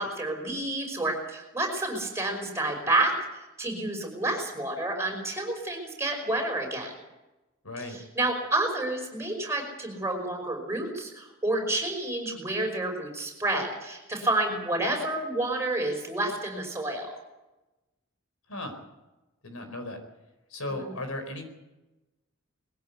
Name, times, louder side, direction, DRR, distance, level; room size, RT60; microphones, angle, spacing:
voice 1, 0.0-3.1 3.6-6.9 7.9-17.1, right 2 dB, 15° right, 2 dB, 5.5 m, -29 dB
voice 2, 7.6-8.0 18.5-18.8 19.4-20.0 20.5-21.5, left 1 dB, 80° left, 7 dB, 4.4 m, -36 dB
21.5 x 16.0 x 8.3 m, 1.0 s
head